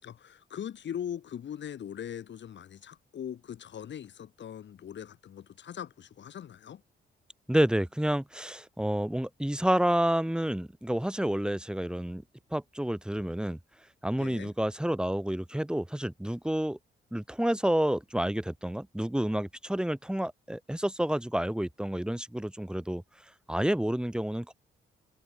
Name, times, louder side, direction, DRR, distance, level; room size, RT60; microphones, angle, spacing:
voice 1, 0.0-6.8 14.2-14.5, left 9 dB, 70° left, 4.5 m, -40 dB
voice 2, 7.5-12.2 12.5-13.6 14.0-16.8 17.1-23.0 23.5-24.5, right 1 dB, 5° right, 1.9 m, -29 dB
cardioid pair, 85°, 19 cm